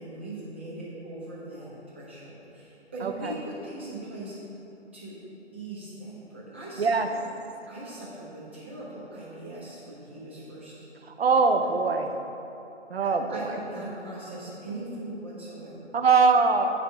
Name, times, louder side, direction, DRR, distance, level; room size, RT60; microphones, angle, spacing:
voice 1, 0.0-1.7 1.9-4.3 4.9-5.2 5.5-7.2 7.7-10.7 11.6-11.7 13.0-15.9, right 1 dB, 10° right, -9 dB, 0.8 m, -40 dB
voice 2, 3.0-3.3 6.8-7.1 11.1-12.1 12.9-13.5 15.9-16.7, right 4 dB, 60° right, 5 dB, 0.8 m, -22 dB
9.7 x 3.5 x 6.9 m, 2.9 s
figure-of-eight pair, 165°, 35 cm